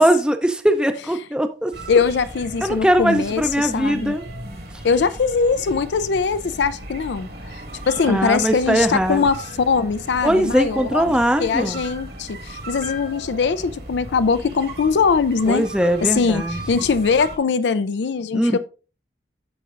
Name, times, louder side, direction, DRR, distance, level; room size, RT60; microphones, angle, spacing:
voice 1, 0.0-1.7 2.6-4.2 8.1-9.2 10.2-11.8 15.5-16.8 18.3-18.6, right 1 dB, 5° right, 0.5 m, -20 dB
sound 1, 1.7-17.4, right 1 dB, 60° right, 1.8 m, -37 dB
voice 2, 1.9-4.1 4.8-11.0 11.4-15.7 16.0-18.6, left 5 dB, 80° left, 0.4 m, -21 dB
14.5 x 5.1 x 2.5 m
head